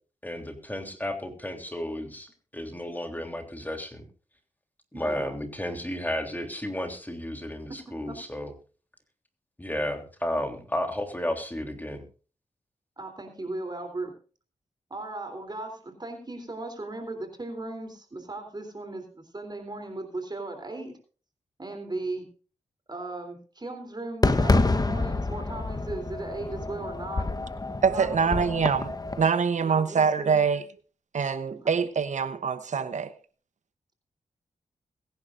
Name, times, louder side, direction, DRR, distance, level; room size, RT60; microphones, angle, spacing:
voice 1, 0.2-4.0 4.9-8.5 9.6-12.0, left 1 dB, 15° left, 3.3 m, -33 dB
voice 2, 4.9-5.3 8.1-8.2 13.0-14.1 14.9-20.9 21.6-22.3 22.9-27.3 27.9-28.5 29.6-30.4, right 2 dB, 35° right, 3.4 m, -37 dB
Fireworks, 24.2-29.3, left 2 dB, 30° left, 1.2 m, -27 dB
voice 3, 27.8-30.6 31.1-33.1, right 6 dB, 65° right, 1.0 m, -25 dB
22.0 x 10.5 x 2.6 m
cardioid pair, 50°, 13 cm